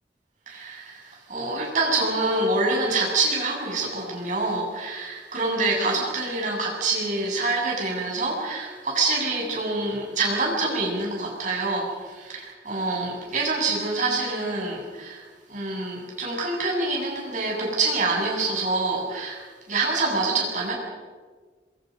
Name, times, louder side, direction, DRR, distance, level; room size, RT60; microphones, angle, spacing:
voice 1, 0.5-20.7, right 3 dB, 45° right, -2 dB, 7.6 m, -26 dB
27.0 x 23.0 x 5.3 m, 1.4 s
head